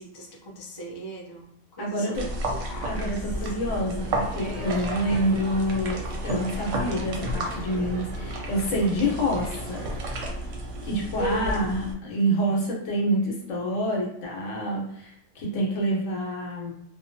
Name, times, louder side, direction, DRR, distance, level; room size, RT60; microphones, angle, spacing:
voice 1, 0.0-1.5 1.8-3.2 11.2-11.6, right 1 dB, 45° left, -2 dB, 0.3 m, -36 dB
voice 2, 1.8-2.3 2.8-9.9 10.8-16.7, right 1 dB, 75° left, -2 dB, 1.1 m, -27 dB
sound 1, 2.1-11.9, right 1 dB, 90° right, 1.0 m, -32 dB
Crowd, 4.0-10.3, right 2 dB, 50° right, 0.4 m, -41 dB
2.6 x 2.2 x 2.6 m, 0.76 s
omnidirectional pair, 1.3 m